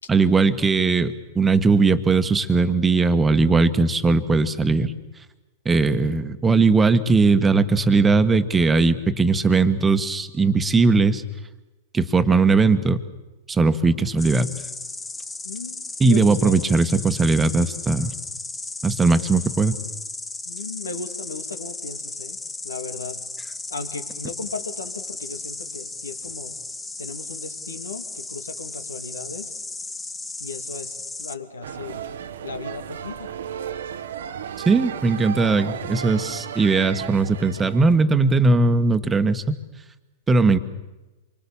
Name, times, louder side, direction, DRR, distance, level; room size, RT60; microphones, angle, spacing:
voice 1, 0.1-4.9 5.6-11.2 11.9-13.0 13.5-14.5 16.0-18.1 18.8-19.8 34.6-39.5 40.3-40.6, right 3 dB, 15° right, 11 dB, 1.6 m, -19 dB
Insect, 14.2-31.3, left 3 dB, 10° left, 1.5 m, -35 dB
voice 2, 15.4-16.6 20.4-22.4 22.6-23.2 23.7-26.6 27.0-29.6 30.4-32.1 32.4-33.3, left 4 dB, 75° left, 8 dB, 2.5 m, -36 dB
sound 1, 31.6-38.0, right 8 dB, 65° right, 1.2 m, -34 dB
27.5 x 24.5 x 7.3 m, 1.1 s
figure-of-eight pair, 100°, 0 cm